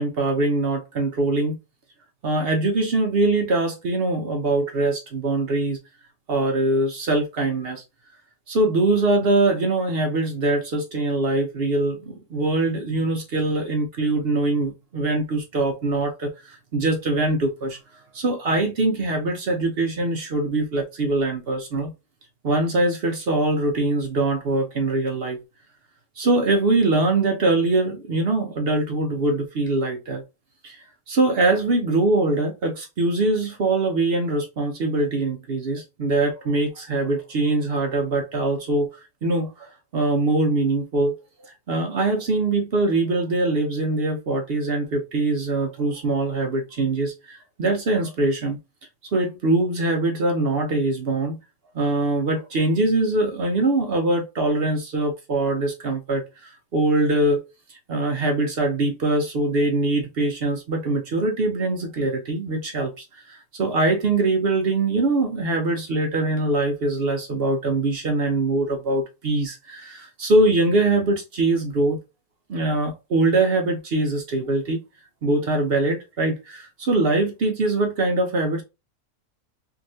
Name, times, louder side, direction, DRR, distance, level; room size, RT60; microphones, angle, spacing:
voice 1, 0.0-1.6 2.2-5.8 6.3-7.8 8.5-17.8 18.1-21.9 22.4-25.4 26.2-30.2 30.6-39.7 39.9-41.1 41.4-48.6 49.1-51.4 51.7-57.4 57.7-72.0 72.5-74.8 75.2-78.6, right 2 dB, 55° right, 0.7 m, -23 dB
3.1 x 2.7 x 2.6 m
omnidirectional pair, 1.5 m